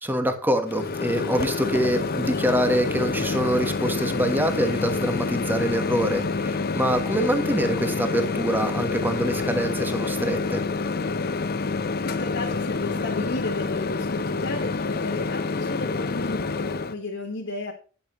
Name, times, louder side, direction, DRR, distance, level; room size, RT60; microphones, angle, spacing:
voice 1, 0.0-10.6, equal, 10° right, 7 dB, 1.3 m, -25 dB
Microwave oven, 0.7-16.9, left 4 dB, 50° left, 0.7 m, -27 dB
voice 2, 12.0-17.7, left 2 dB, 65° left, -1 dB, 1.5 m, -33 dB
10.5 x 9.1 x 3.0 m, 0.39 s
head